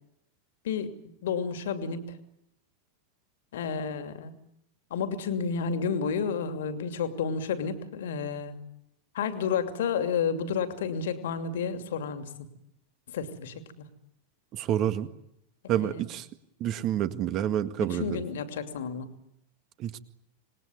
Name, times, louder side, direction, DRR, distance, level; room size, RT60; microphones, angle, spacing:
voice 1, 0.6-2.2 3.5-4.3 4.9-8.6 9.1-12.3 13.1-13.9 15.6-16.0 17.8-19.1, left 6 dB, 60° left, 8 dB, 2.7 m, -31 dB
voice 2, 14.5-15.1 15.7-16.3 16.6-18.2 19.8-20.0, right 10 dB, 35° right, 11 dB, 1.8 m, -28 dB
27.0 x 21.0 x 9.5 m, 0.82 s
figure-of-eight pair, 90°, 0 cm